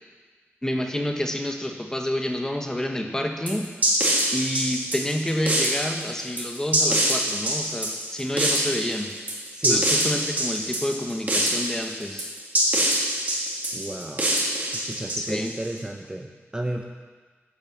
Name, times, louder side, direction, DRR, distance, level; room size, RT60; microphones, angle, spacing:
voice 1, 0.6-3.8 4.3-9.2 9.6-12.3 15.2-15.6, left 1 dB, 10° left, 3 dB, 1.1 m, -28 dB
sound 1, 3.5-15.7, right 1 dB, 40° right, 2.4 m, -25 dB
voice 2, 13.7-14.3 14.7-16.8, right 1 dB, 20° right, 3 dB, 0.6 m, -32 dB
10.5 x 6.5 x 7.3 m, 1.4 s
wide cardioid pair, 115°, 5 cm